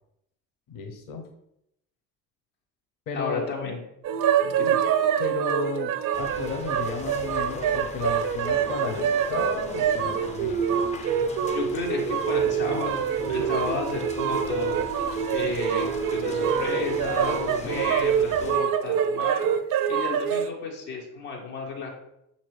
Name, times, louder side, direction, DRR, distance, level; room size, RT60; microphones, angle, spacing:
voice 1, 0.7-1.2 3.1-3.5 4.6-4.8 5.2-10.9, left 6 dB, 45° left, 5 dB, 0.7 m, -34 dB
voice 2, 3.1-3.8 4.4-4.8 11.4-13.0 13.3-14.9 15.3-19.5 19.9-21.9, left 4 dB, 80° left, -1 dB, 1.0 m, -33 dB
sound 1, 4.0-20.5, right 8 dB, 45° right, 0.5 m, -25 dB
sound 2, 6.1-18.6, left 3 dB, 15° left, 0.3 m, -38 dB
6.0 x 2.8 x 3.1 m, 0.78 s
hypercardioid pair, 50°, 47 cm